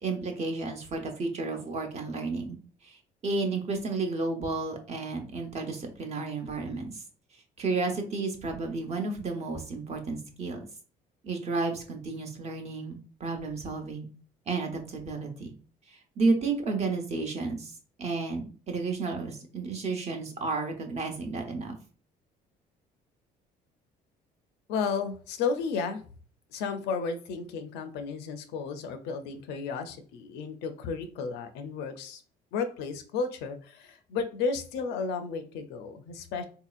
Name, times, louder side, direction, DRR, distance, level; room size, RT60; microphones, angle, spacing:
voice 1, 0.0-2.6 2.8-3.0 3.2-7.0 7.6-10.6 11.2-14.1 14.5-15.5 16.2-17.7 18.0-21.7, right 3 dB, 40° right, 4 dB, 0.9 m, -32 dB
voice 2, 24.7-26.0 26.5-32.2 32.5-36.4, left 5 dB, 90° left, 8 dB, 0.6 m, -33 dB
3.9 x 2.8 x 2.4 m, 0.40 s
cardioid pair, 110°, 17 cm